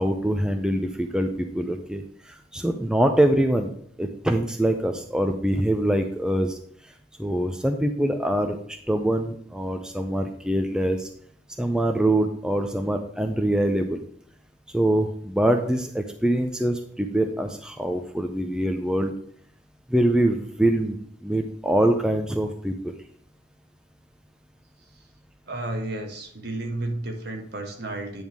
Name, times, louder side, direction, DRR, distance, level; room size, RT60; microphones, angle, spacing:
voice 1, 0.0-3.7 4.0-6.6 7.2-11.1 11.6-14.0 14.7-19.1 19.9-21.0 21.2-23.0, right 1 dB, 5° right, 5 dB, 0.5 m, -24 dB
voice 2, 25.5-28.2, right 2 dB, 60° right, 3 dB, 1.4 m, -32 dB
9.5 x 3.5 x 6.0 m, 0.63 s
head